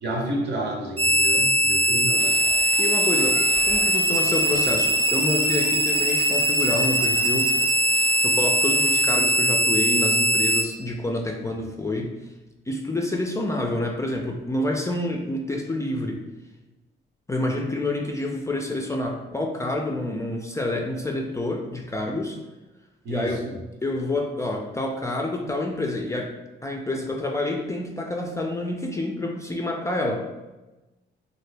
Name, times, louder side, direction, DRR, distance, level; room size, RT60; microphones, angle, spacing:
voice 1, 0.0-2.4 23.0-23.5, right 1 dB, 60° right, 0 dB, 0.8 m, -30 dB
sound 1, 1.0-10.6, equal, 30° right, 0.7 m, -21 dB
sound 2, 2.2-9.2, right 2 dB, 90° right, 0.6 m, -41 dB
voice 2, 2.8-3.4 3.6-7.5 8.2-12.1 12.7-16.2 17.3-22.4 23.1-23.4 23.8-26.3 26.6-30.2, left 2 dB, 15° left, 1 dB, 0.4 m, -28 dB
2.7 x 2.5 x 3.3 m, 1.1 s
cardioid pair, 90°, 20 cm